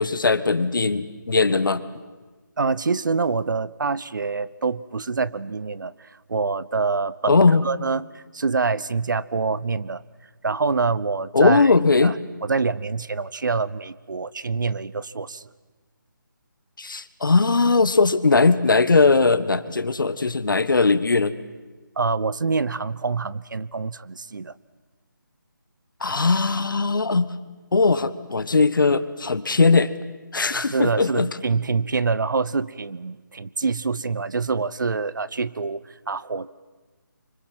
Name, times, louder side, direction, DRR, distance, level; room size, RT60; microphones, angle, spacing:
voice 1, 0.0-1.8 7.3-7.6 11.3-12.2 16.8-21.4 26.0-27.3 27.7-29.9 30.3-31.3, left 4 dB, 70° left, 14 dB, 1.5 m, -19 dB
voice 2, 2.6-10.0 10.4-11.7 12.0-12.1 12.4-15.5 22.0-24.5 30.5-36.5, right 4 dB, 65° right, 18 dB, 0.9 m, -26 dB
27.0 x 25.0 x 7.6 m, 1.3 s
figure-of-eight pair, 160°, 11 cm